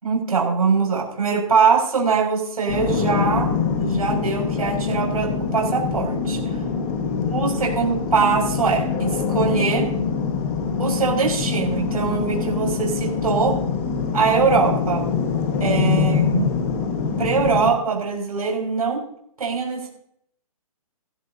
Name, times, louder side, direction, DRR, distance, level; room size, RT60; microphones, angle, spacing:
voice 1, 0.0-3.5 3.8-6.4 7.3-9.9 10.8-13.6 14.1-15.1 15.6-16.5 17.2-19.0 19.4-19.9, right 5 dB, 85° right, 0 dB, 6.3 m, -22 dB
sound 1, 2.7-17.7, left 5 dB, 20° left, 1.6 m, -24 dB
16.5 x 16.5 x 2.8 m, 0.70 s
hypercardioid pair, 175°, 19 cm